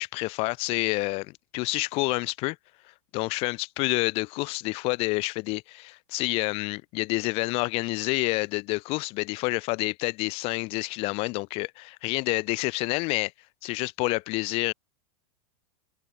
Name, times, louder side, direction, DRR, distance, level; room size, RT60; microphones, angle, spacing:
voice 1, 0.0-2.6 3.1-13.3 13.6-14.7, left 24 dB, 35° left, 0.4 m, -28 dB
hypercardioid pair, 135°, 18 cm